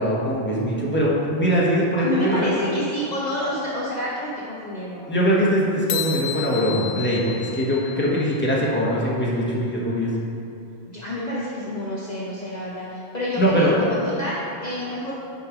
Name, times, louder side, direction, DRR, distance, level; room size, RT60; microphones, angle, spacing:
voice 1, 0.0-2.5 5.1-10.1 13.4-13.7, equal, 10° left, -6 dB, 1.2 m, -22 dB
voice 2, 2.0-5.1 10.9-15.1, left 1 dB, 40° left, -6 dB, 1.0 m, -28 dB
sound 1, 5.9-8.5, left 8 dB, 90° left, 0.9 m, -32 dB
6.8 x 4.9 x 5.1 m, 2.7 s
omnidirectional pair, 1.1 m